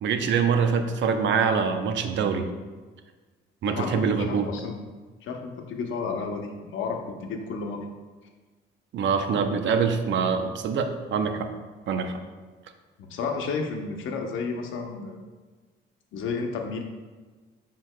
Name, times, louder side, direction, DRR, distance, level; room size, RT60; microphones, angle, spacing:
voice 1, 0.0-2.5 3.6-4.5 8.9-11.5 11.9-12.2, right 6 dB, 70° right, 7 dB, 0.7 m, -24 dB
voice 2, 3.6-4.8 5.2-7.8 13.1-15.2 16.1-16.8, left 4 dB, 80° left, 3 dB, 0.8 m, -32 dB
11.0 x 4.0 x 2.2 m, 1.4 s
cardioid pair, 90°, 20 cm